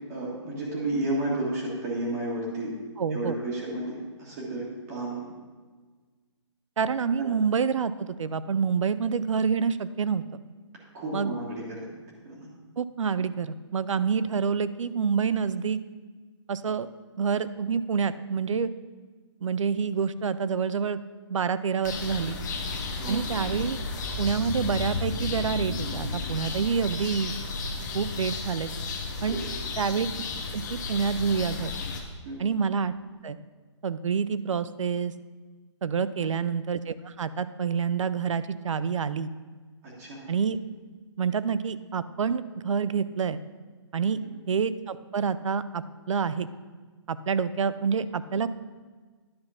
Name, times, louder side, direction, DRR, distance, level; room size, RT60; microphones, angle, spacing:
voice 1, 0.1-2.7 3.1-5.3 7.2-7.3 10.9-11.9 12.2-12.5 22.9-23.2 29.2-29.4 32.2-32.4 36.2-36.3 39.8-40.2, right 2 dB, 30° right, -6 dB, 1.6 m, -32 dB
voice 2, 3.0-3.3 6.8-10.2 11.1-11.3 12.8-15.8 16.5-16.9 17.2-18.7 19.4-21.0 21.3-22.4 23.1-23.8 24.2-27.3 27.9-28.7 29.2-29.4 29.8-30.2 30.5-31.7 32.4-32.9 33.2-33.4 33.8-35.1 35.8-39.3 40.3-40.6 41.2-43.4 43.9-44.2 44.5-46.5 47.1-48.6, right 6 dB, 85° right, 15 dB, 0.5 m, -27 dB
sound 1, 21.8-32.0, left 3 dB, 35° left, 1.0 m, -33 dB
10.5 x 4.3 x 5.6 m, 1.4 s
hypercardioid pair, 160°, 16 cm